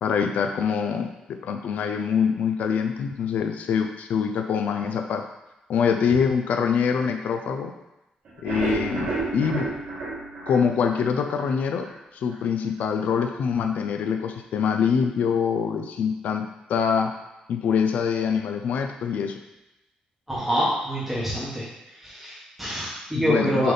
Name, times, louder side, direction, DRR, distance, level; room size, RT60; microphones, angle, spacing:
voice 1, 0.0-5.2 5.7-7.7 8.4-9.7 10.5-11.9 12.1-17.1 17.5-19.4 23.1-23.7, left 6 dB, 70° left, 5 dB, 0.5 m, -24 dB
sound 1, 8.3-11.5 11.9-12.0 12.3-12.4 12.8-12.9, right 3 dB, 60° right, 1.9 m, -31 dB
voice 2, 20.3-21.6 22.0-23.7, equal, 5° right, -9 dB, 1.5 m, -26 dB
6.7 x 3.5 x 3.9 m, 0.94 s
wide cardioid pair, 170°, 3 cm